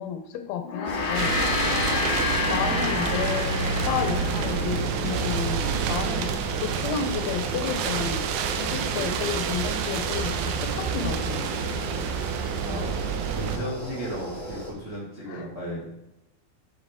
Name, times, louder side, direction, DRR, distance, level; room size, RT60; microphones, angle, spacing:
voice 1, 0.0-1.4 2.5-11.6 15.3-15.4, left 7 dB, 80° left, 7 dB, 2.5 m, -31 dB
Gong, 0.6-5.2, left 4 dB, 60° left, 1.6 m, -29 dB
sound 1, 0.8-14.7, equal, 35° left, 0.6 m, -37 dB
sound 2, 1.2-13.6, right 6 dB, 85° right, 2.5 m, -28 dB
voice 2, 12.6-15.9, equal, 55° right, -6 dB, 0.8 m, -35 dB
9.7 x 4.1 x 3.5 m, 0.91 s
omnidirectional pair, 4.5 m